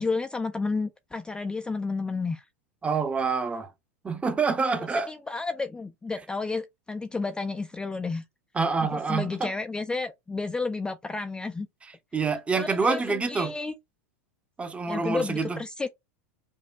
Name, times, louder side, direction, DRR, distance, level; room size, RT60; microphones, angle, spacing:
voice 1, 0.0-2.4 4.7-8.2 8.8-11.7 12.5-13.7 14.9-15.9, left 4 dB, 10° left, 0.3 m, -31 dB
voice 2, 2.8-3.7 4.0-5.1 8.5-9.5 12.1-13.5 14.6-15.6, right 4 dB, 15° right, 0.7 m, -27 dB
5.3 x 2.2 x 2.3 m
hypercardioid pair, 105°, 8 cm